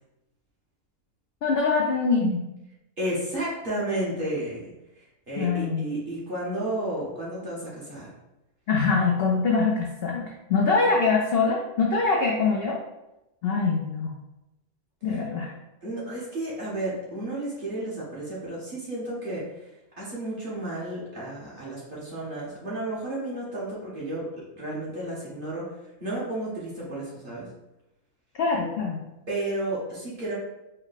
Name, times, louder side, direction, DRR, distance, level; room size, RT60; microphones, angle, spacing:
voice 1, 1.4-2.4 5.4-5.8 8.7-12.8 13.4-14.1 15.0-15.5 28.4-29.0, left 4 dB, 70° left, -1 dB, 0.5 m, -23 dB
voice 2, 3.0-8.1 15.8-19.7 20.0-24.3 24.5-25.7 26.0-27.5 29.3-30.3, right 1 dB, 35° right, -7 dB, 1.4 m, -32 dB
4.5 x 2.2 x 4.0 m, 0.92 s
omnidirectional pair, 1.6 m